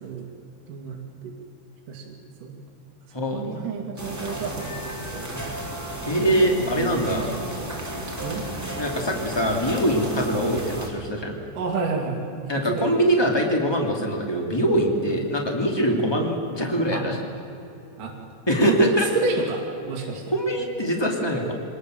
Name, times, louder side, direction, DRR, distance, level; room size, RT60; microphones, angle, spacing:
voice 1, 0.7-1.3 1.9-2.5 3.3-4.7 5.1-5.3 6.6-7.5 8.2-8.5 11.5-12.2 12.6-12.9 15.1-15.2 16.9-17.0 18.0-18.1 18.6-20.2, right 4 dB, 50° right, -1 dB, 3.2 m, -30 dB
voice 2, 3.1-3.8 5.4-5.6 6.0-7.3 8.7-11.4 12.5-17.2 18.5-19.1 20.3-21.5, equal, 15° left, 1 dB, 1.0 m, -23 dB
sound 1, 4.0-10.9, right 1 dB, 5° right, 2.7 m, -33 dB
24.5 x 20.5 x 7.8 m, 2.9 s
omnidirectional pair, 5.6 m